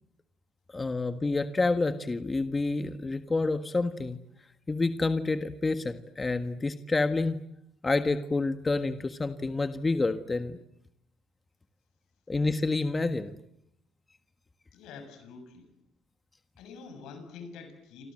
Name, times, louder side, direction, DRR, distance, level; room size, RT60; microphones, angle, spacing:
voice 1, 0.7-4.2 4.7-7.4 7.8-10.6 12.3-13.4, left 3 dB, 25° left, 9 dB, 1.6 m, -28 dB
voice 2, 14.7-15.7 16.6-18.1, left 5 dB, 75° left, 8 dB, 7.2 m, -46 dB
30.0 x 25.5 x 7.8 m, 0.78 s
supercardioid pair, 80°, 0 cm